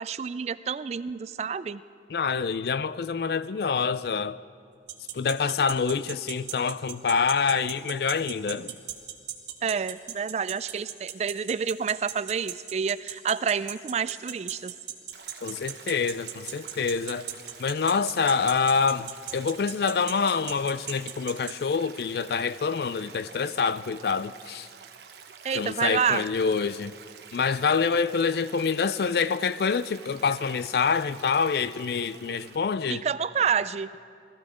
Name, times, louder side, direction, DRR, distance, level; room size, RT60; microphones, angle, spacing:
voice 1, 0.0-1.8 9.6-14.7 25.4-26.3 32.9-33.9, right 6 dB, 35° right, 0.3 m, -28 dB
voice 2, 2.1-4.4 5.1-8.7 15.4-17.3 17.6-24.7 25.5-26.9 27.3-33.0, left 5 dB, 60° left, 0.4 m, -26 dB
sound 1, 4.9-21.5, right 12 dB, 85° right, 1.5 m, -35 dB
Stream, 15.1-32.6, right 6 dB, 70° right, 1.0 m, -48 dB
20.5 x 14.5 x 5.0 m
head